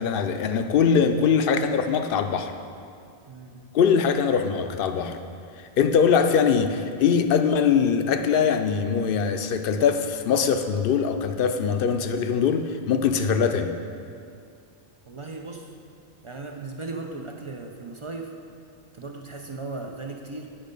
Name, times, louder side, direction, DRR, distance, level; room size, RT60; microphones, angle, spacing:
voice 1, 0.0-2.5 3.7-5.2 5.8-13.7, left 6 dB, 65° left, 7 dB, 0.7 m, -22 dB
voice 2, 3.3-3.8 15.0-15.7 16.2-18.3 18.9-20.5, right 3 dB, 40° right, 2 dB, 0.4 m, -37 dB
8.8 x 5.4 x 5.2 m, 2.3 s
omnidirectional pair, 1.1 m